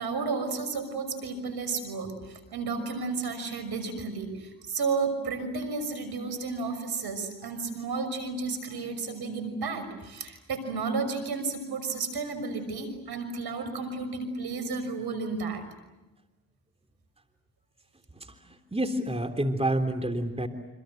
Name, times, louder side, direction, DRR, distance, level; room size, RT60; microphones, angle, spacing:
voice 1, 0.0-15.6, right 4 dB, 70° right, 9 dB, 6.1 m, -32 dB
voice 2, 18.2-20.5, right 1 dB, 15° right, 6 dB, 3.5 m, -29 dB
28.0 x 27.0 x 7.9 m, 1.0 s
supercardioid pair, 45°, 40 cm